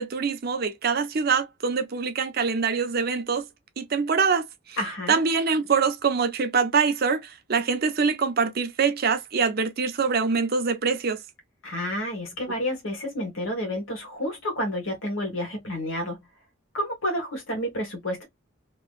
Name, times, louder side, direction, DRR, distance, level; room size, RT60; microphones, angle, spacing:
voice 1, 0.0-3.5 3.8-4.8 5.1-11.2, right 5 dB, 50° right, 0.6 m, -24 dB
voice 2, 4.8-5.2 11.6-16.2 16.7-18.2, equal, 85° left, 1.5 m, -30 dB
3.0 x 2.6 x 2.4 m
head